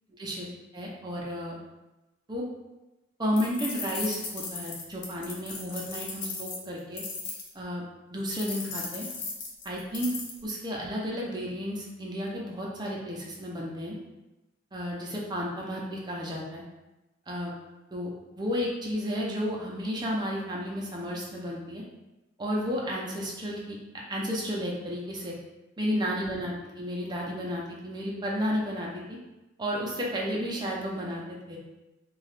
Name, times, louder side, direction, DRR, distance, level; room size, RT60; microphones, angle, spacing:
voice 1, 0.2-0.5 0.7-1.6 2.3-2.4 3.2-7.0 7.5-7.8 8.1-9.1 9.6-10.1 10.4-14.0 14.7-16.6 17.3-17.5 17.9-18.1 18.4-21.8 22.4-25.3 25.8-29.2 29.6-31.6, equal, 20° right, -3 dB, 0.5 m, -32 dB
sound 1, 3.4-7.5 8.3-10.4, left 4 dB, 65° left, 0.6 m, -37 dB
2.8 x 2.3 x 3.2 m, 1.0 s
head